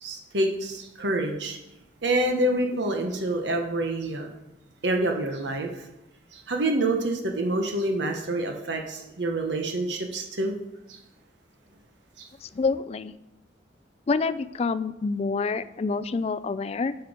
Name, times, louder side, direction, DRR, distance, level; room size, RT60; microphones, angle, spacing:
voice 1, 0.0-1.6 2.0-4.3 4.8-5.9 6.3-10.5 10.9-11.0 12.2-12.3, right 1 dB, 80° right, 3 dB, 1.1 m, -27 dB
voice 2, 12.4-13.1 14.1-16.9, left 4 dB, 35° left, 15 dB, 0.3 m, -27 dB
8.0 x 6.7 x 5.0 m, 0.91 s
head